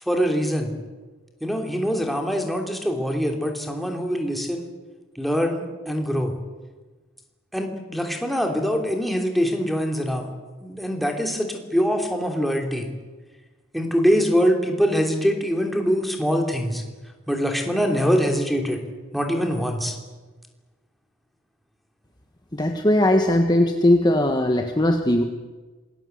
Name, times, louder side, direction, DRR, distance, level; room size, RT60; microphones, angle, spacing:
voice 1, 0.1-0.7 1.4-4.7 5.1-6.3 7.5-10.3 10.6-12.9 13.7-16.8 17.3-18.8 19.1-20.0, equal, ahead, 2 dB, 3.0 m, -23 dB
voice 2, 22.5-25.2, left 1 dB, 20° left, 4 dB, 1.4 m, -19 dB
27.0 x 19.5 x 8.1 m, 1.3 s
head